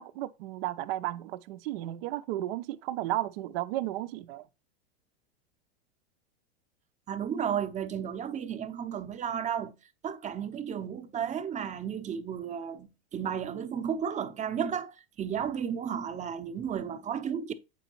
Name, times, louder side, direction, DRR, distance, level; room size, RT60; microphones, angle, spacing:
voice 1, 0.0-4.4, right 15 dB, 60° right, 0.7 m, -34 dB
voice 2, 7.1-9.7 10.0-17.5, right 8 dB, 20° right, 0.8 m, -33 dB
8.4 x 5.1 x 3.0 m
supercardioid pair, 130°, 32 cm